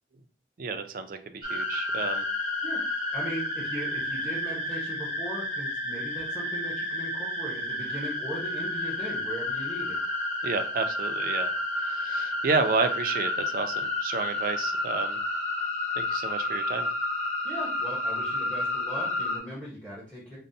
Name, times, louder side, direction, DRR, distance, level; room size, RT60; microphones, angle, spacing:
voice 1, 0.6-2.3 10.4-11.5 11.8-15.2 16.0-16.9, right 4 dB, 50° right, 8 dB, 0.4 m, -30 dB
sound 1, 1.4-19.4, left 1 dB, 40° left, 0.9 m, -30 dB
voice 2, 2.6-10.0 17.4-20.4, right 1 dB, 5° left, -6 dB, 0.9 m, -38 dB
5.2 x 2.1 x 2.6 m, 0.42 s
head